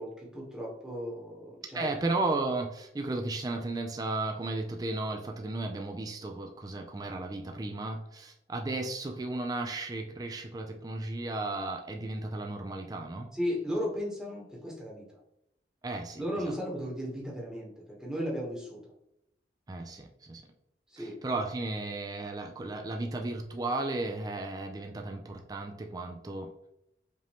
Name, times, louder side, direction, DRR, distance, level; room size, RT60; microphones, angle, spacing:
voice 1, 0.0-1.9 13.3-15.2 16.2-18.8 20.9-21.2, equal, 5° right, -4 dB, 1.0 m, -35 dB
voice 2, 1.7-13.3 15.8-16.5 19.7-20.4 21.0-26.5, right 2 dB, 20° right, 3 dB, 0.3 m, -34 dB
5.2 x 2.6 x 3.4 m, 0.80 s
head